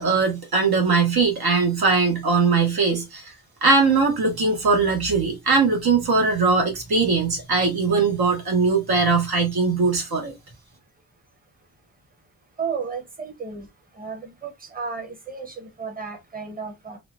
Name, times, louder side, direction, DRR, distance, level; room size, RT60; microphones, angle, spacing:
voice 1, 0.0-3.3 3.6-10.3, right 4 dB, 75° right, 1.4 m, -20 dB
voice 2, 12.6-13.7 14.0-17.0, right 5 dB, 25° right, 1.0 m, -33 dB
4.2 x 2.5 x 2.4 m
wide cardioid pair, 175°, 37 cm